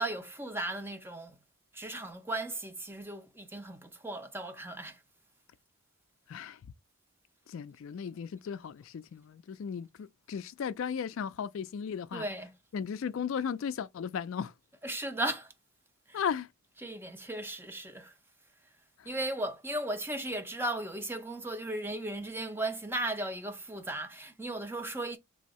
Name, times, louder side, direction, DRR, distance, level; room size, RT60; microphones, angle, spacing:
voice 1, 0.0-1.3 1.7-5.0 12.1-12.5 14.8-15.5 16.1-16.3 16.8-18.1 19.1-25.2, right 1 dB, 10° right, 0.6 m, -36 dB
voice 2, 7.5-12.2 12.7-14.5 16.1-16.5, left 7 dB, 60° left, 0.3 m, -36 dB
3.4 x 2.7 x 4.1 m
head